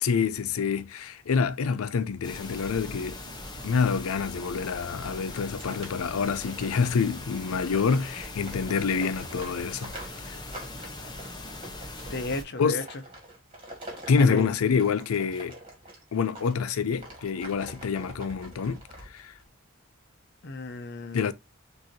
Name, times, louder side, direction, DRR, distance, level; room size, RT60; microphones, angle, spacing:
voice 1, 0.0-3.2 3.6-9.9 10.3-10.4 12.6-12.8 14.1-15.5 16.1-19.3 21.1-21.3, left 5 dB, 90° left, 0.4 m, -27 dB
sound 1, 2.2-12.4, left 2 dB, 20° left, 0.7 m, -40 dB
sound 2, 4.6-16.5 16.9-19.4, right 1 dB, 25° right, 1.8 m, -46 dB
voice 2, 12.1-12.8 14.2-14.5 20.4-21.3, left 1 dB, 55° left, 0.7 m, -33 dB
6.1 x 2.7 x 2.7 m
head